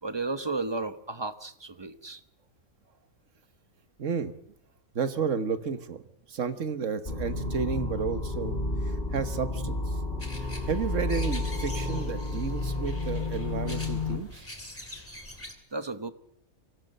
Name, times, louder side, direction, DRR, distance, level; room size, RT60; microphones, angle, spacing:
voice 1, 0.0-2.2 15.7-16.1, right 3 dB, 20° right, 11 dB, 0.9 m, -33 dB
voice 2, 4.0-4.4 4.9-6.0 6.3-8.6 8.8-10.0 10.7-14.4, right 6 dB, 60° right, 10 dB, 1.6 m, -32 dB
sound 1, 7.0-14.2, left 2 dB, 30° left, 3.3 m, -31 dB
sound 2, 10.2-15.5, left 1 dB, 10° left, 2.9 m, -45 dB
25.0 x 17.0 x 6.6 m, 0.71 s
omnidirectional pair, 1.5 m